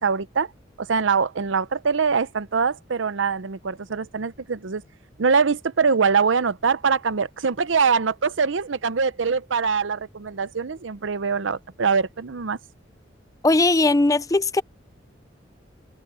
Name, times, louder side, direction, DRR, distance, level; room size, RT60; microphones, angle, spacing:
voice 1, 0.0-0.5 0.8-4.8 5.2-12.6, right 5 dB, 85° right, 0.7 m, -23 dB
voice 2, 13.4-14.6, left 2 dB, 20° left, 0.5 m, -19 dB
head